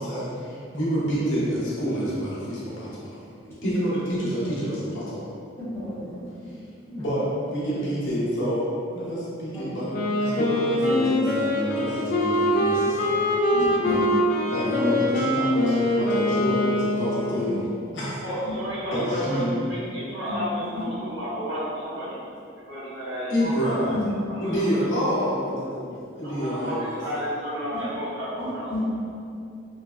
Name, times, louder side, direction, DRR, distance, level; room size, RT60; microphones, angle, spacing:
voice 1, 0.0-3.2 3.6-5.2 6.9-9.9 10.2-13.2 13.8-14.2 14.5-18.2 18.9-19.6 23.3-24.1 24.4-27.0, equal, 75° left, -8 dB, 0.8 m, -28 dB
voice 2, 5.6-6.0 9.5-9.6 13.5-14.0 20.3-20.6 23.9-24.0 28.7-28.8, left 2 dB, 15° left, -12 dB, 0.8 m, -31 dB
Wind instrument woodwind instrument, 9.9-17.5, left 1 dB, 40° left, 0.3 m, -23 dB
voice 3, 18.2-19.4 19.7-22.2 22.7-23.5 24.3-24.5 24.9-25.1 26.2-26.7 27.0-28.8, equal, 80° right, -12 dB, 1.3 m, -32 dB
3.2 x 2.1 x 2.3 m, 2.5 s
head